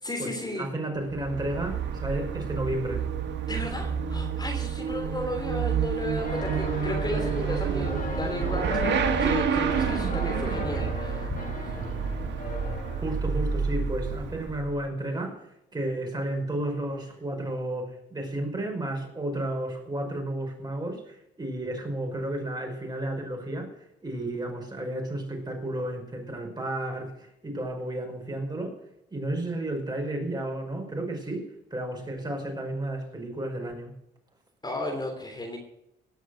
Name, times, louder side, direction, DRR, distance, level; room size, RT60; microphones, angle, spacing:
voice 1, 0.0-0.7 3.5-11.3 11.6-11.7 34.6-35.6, left 1 dB, 20° left, 2 dB, 3.3 m, -34 dB
voice 2, 0.6-3.1 13.0-15.5 15.7-28.7 29.1-33.9, right 1 dB, 20° right, 1 dB, 5.3 m, -32 dB
Motorcycle / Accelerating revving vroom, 1.0-14.8, right 7 dB, 65° right, 1.7 m, -29 dB
sound 1, 6.2-13.1, left 4 dB, 45° left, 3.5 m, -36 dB
18.5 x 6.5 x 6.5 m, 0.83 s
cardioid pair, 90°, 20 cm